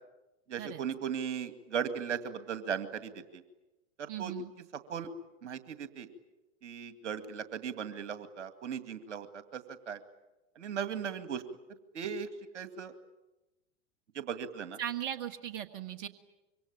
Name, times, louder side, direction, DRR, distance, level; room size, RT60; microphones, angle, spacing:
voice 1, 0.5-3.4 4.0-4.3 4.9-5.1 5.4-6.1 6.6-10.0 10.6-11.4 11.9-12.3 12.5-12.9 14.1-14.8, right 7 dB, 70° right, 10 dB, 2.2 m, -37 dB
voice 2, 4.1-4.5 14.8-16.1, right 10 dB, 45° right, 7 dB, 1.7 m, -38 dB
26.0 x 24.5 x 9.0 m, 1.0 s
figure-of-eight pair, 95°, 36 cm